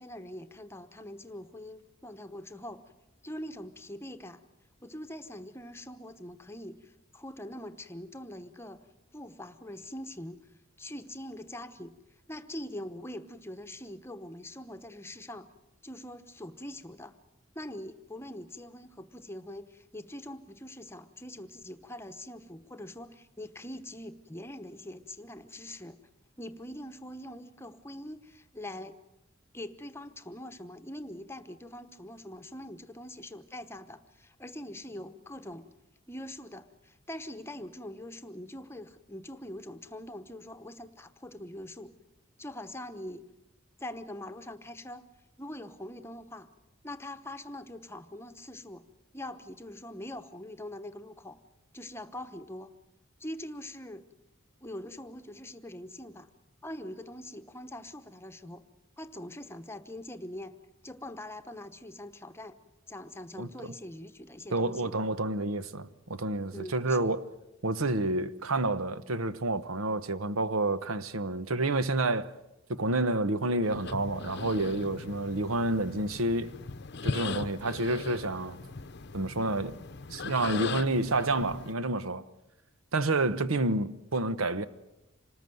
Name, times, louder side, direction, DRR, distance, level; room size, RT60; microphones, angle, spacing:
voice 1, 0.0-2.8 3.2-4.4 4.8-8.9 9.1-10.5 10.8-11.9 12.3-15.5 15.8-17.1 17.5-26.0 26.4-28.9 29.5-35.7 36.1-41.9 42.4-43.2 43.8-45.0 45.4-46.5 46.8-48.8 49.1-51.4 51.7-52.7 53.2-54.1 54.6-56.3 56.6-58.6 59.0-60.6 60.8-62.6 62.9-65.0 66.5-67.1 80.3-80.5, left 1 dB, 10° left, 1.0 m, -43 dB
voice 2, 63.4-63.7 64.5-67.2 67.6-72.3 72.7-76.5 77.0-78.6 79.1-79.8 80.1-82.2 82.9-84.6, right 2 dB, 80° right, 1.0 m, -29 dB
sound 1, 73.6-81.7, left 4 dB, 55° left, 0.8 m, -39 dB
27.0 x 19.5 x 7.8 m
head